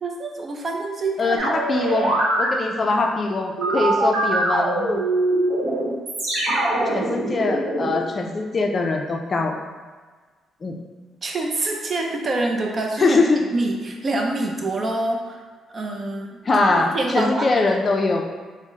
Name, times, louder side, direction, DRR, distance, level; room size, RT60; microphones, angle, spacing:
voice 1, 0.0-1.6 11.2-13.2 13.5-15.4 15.7-16.4 16.7-17.5, right 2 dB, 40° right, 1 dB, 0.5 m, -26 dB
voice 2, 1.2-2.1 2.4-5.0 6.9-9.5 10.6-10.8 13.0-13.4 16.4-18.2, left 3 dB, 35° left, 2 dB, 0.4 m, -22 dB
sound 1, 1.4-2.5 3.6-8.0, right 2 dB, 80° right, 0.9 m, -22 dB
3.5 x 2.1 x 3.9 m, 1.4 s
cardioid pair, 90°, 0 cm